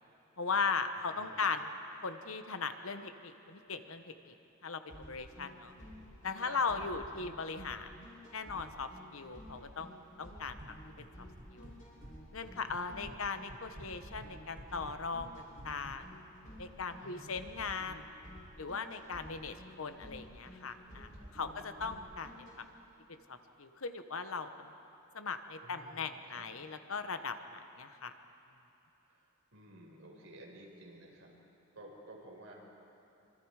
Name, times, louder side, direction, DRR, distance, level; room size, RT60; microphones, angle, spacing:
voice 1, 0.4-1.7 2.0-4.4 4.6-5.7 6.2-8.1 8.3-10.6 11.0-11.1 11.5-11.7 12.3-16.0 16.6-18.1 18.6-22.6 23.1-24.7 25.1-28.1, left 4 dB, 75° left, 8 dB, 1.2 m, -38 dB
sound 1, 4.9-22.6, equal, 40° left, 6.6 m, -52 dB
voice 2, 6.4-7.1 12.4-12.8 13.0-13.2 17.0-17.3 21.1-21.6 25.6-26.4 29.1-31.3 31.7-32.5, right 1 dB, 70° right, -2 dB, 5.2 m, -54 dB
sound 2, 10.6-11.1 11.4-12.1 12.4-13.2 13.5-16.0, right 1 dB, 40° right, 1.4 m, -51 dB
26.0 x 25.5 x 4.9 m, 3.0 s
head